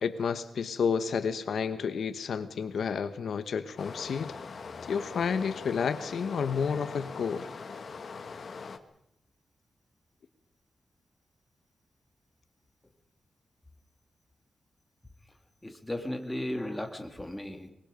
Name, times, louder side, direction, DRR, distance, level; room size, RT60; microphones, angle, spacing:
voice 1, 0.0-4.3 4.8-7.5, left 6 dB, 70° left, 11 dB, 1.1 m, -30 dB
Stream, 3.8-8.8, left 4 dB, 50° left, 1.5 m, -42 dB
voice 2, 15.6-17.7, left 1 dB, 10° left, 4 dB, 2.4 m, -35 dB
24.0 x 22.0 x 5.2 m, 0.81 s
wide cardioid pair, 150°, 0 cm